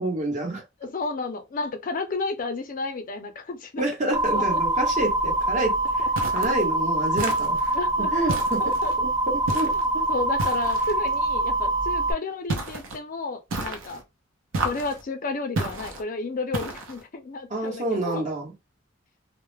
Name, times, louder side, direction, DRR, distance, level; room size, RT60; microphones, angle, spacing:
voice 1, 0.0-0.6 3.8-6.1 6.3-7.6 8.1-8.6 9.0-10.1 17.5-18.5, right 1 dB, 40° right, 1.0 m, -28 dB
voice 2, 0.8-4.6 7.7-8.3 8.6-8.9 9.5-14.0 14.6-18.3, left 3 dB, 45° left, 0.4 m, -32 dB
sound 1, 4.1-12.1, right 2 dB, 20° right, 0.3 m, -24 dB
sound 2, 6.2-6.6 7.2-7.7 8.3-8.9 9.5-9.9 10.4-11.0 12.5-13.0 13.5-14.0 14.5-15.0 15.6-16.0 16.5-17.0, right 2 dB, 80° right, 0.6 m, -31 dB
2.2 x 2.0 x 3.1 m
head